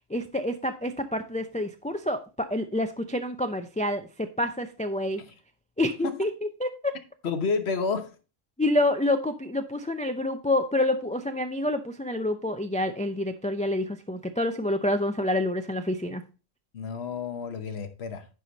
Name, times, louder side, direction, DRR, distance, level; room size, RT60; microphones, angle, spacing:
voice 1, 0.1-5.2 5.8-6.3 6.6-6.9 8.6-16.2, left 1 dB, 10° left, 0.4 m, -28 dB
voice 2, 7.2-8.1 16.7-18.3, left 4 dB, 85° left, 1.3 m, -30 dB
10.0 x 5.0 x 4.0 m
omnidirectional pair, 1.1 m